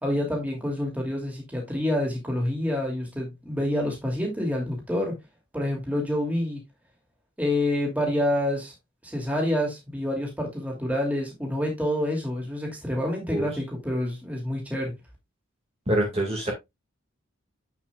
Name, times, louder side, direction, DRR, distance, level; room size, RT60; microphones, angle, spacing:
voice 1, 0.0-5.2 5.5-6.6 7.4-8.7 9.0-14.9, left 1 dB, 5° right, 2.8 m, -27 dB
voice 2, 15.9-16.5, right 1 dB, 30° right, 2.1 m, -25 dB
8.2 x 7.4 x 2.4 m
head